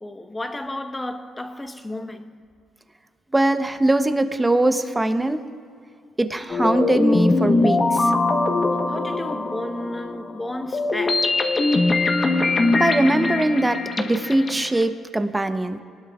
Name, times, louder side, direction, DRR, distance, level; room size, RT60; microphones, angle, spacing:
voice 1, 0.0-2.3 8.9-11.4, left 1 dB, 15° left, 1.2 m, -32 dB
voice 2, 3.3-5.4 6.2-8.1 12.7-15.8, right 1 dB, 15° right, 0.9 m, -21 dB
sound 1, 6.5-14.8, left 2 dB, 35° left, 1.2 m, -22 dB
25.5 x 19.0 x 2.5 m
cardioid pair, 90°, 0 cm